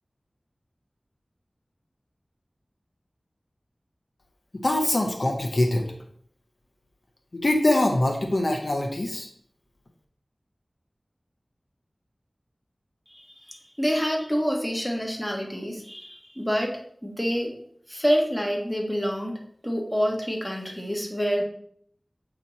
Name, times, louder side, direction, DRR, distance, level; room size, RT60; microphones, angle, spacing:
voice 1, 4.6-5.9 7.4-9.3, left 1 dB, 60° left, 2 dB, 0.8 m, -23 dB
voice 2, 13.1-17.5 17.9-19.4 19.6-21.4, equal, 5° left, 0 dB, 1.4 m, -27 dB
8.0 x 3.0 x 4.1 m, 0.63 s
wide cardioid pair, 55°, 0 cm